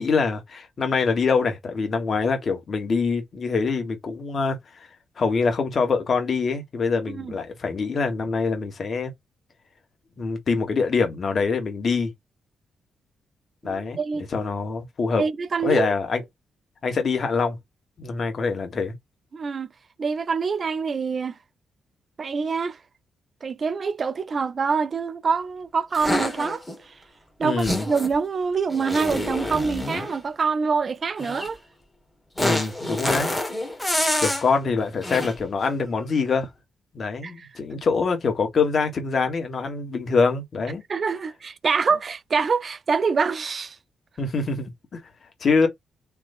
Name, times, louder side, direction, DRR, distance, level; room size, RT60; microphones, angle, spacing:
voice 1, 0.0-4.9 5.2-9.1 10.2-12.1 13.6-14.0 14.3-15.2 15.6-16.2 16.8-17.6 18.0-18.9 27.4-27.9 32.4-33.3 34.2-36.5 36.9-40.8 44.2-45.0 45.4-45.7, left 4 dB, 55° left, 1.5 m, -24 dB
voice 2, 13.6-14.3 15.2-15.9 19.3-19.7 20.0-21.3 22.2-22.8 23.4-26.9 27.4-31.6 37.2-37.5 40.9-43.8, right 5 dB, 50° right, 0.5 m, -25 dB
sound 1, 25.9-26.7 27.6-28.2 28.7-30.2 31.2-31.5 32.4-34.5 35.0-35.4, left 1 dB, 10° left, 1.7 m, -27 dB
3.4 x 3.1 x 2.5 m
supercardioid pair, 60°, 0 cm